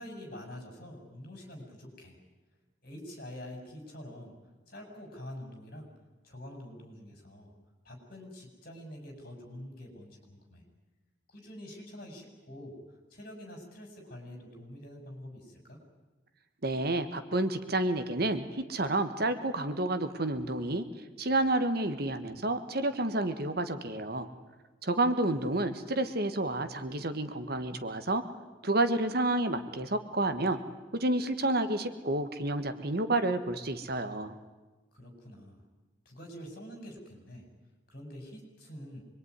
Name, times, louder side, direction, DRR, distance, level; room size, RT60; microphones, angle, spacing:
voice 1, 0.0-2.2 2.8-4.3 4.7-5.9 6.2-7.5 7.8-10.6 11.3-12.8 13.1-15.8 25.3-25.5 34.9-35.6 36.0-37.5 37.9-39.0, left 1 dB, 45° left, 2 dB, 6.8 m, -46 dB
voice 2, 16.6-20.8 21.2-24.3 24.8-28.2 28.6-30.6 30.9-34.3, right 2 dB, 50° right, 10 dB, 1.5 m, -30 dB
25.5 x 22.0 x 9.7 m, 1.2 s
head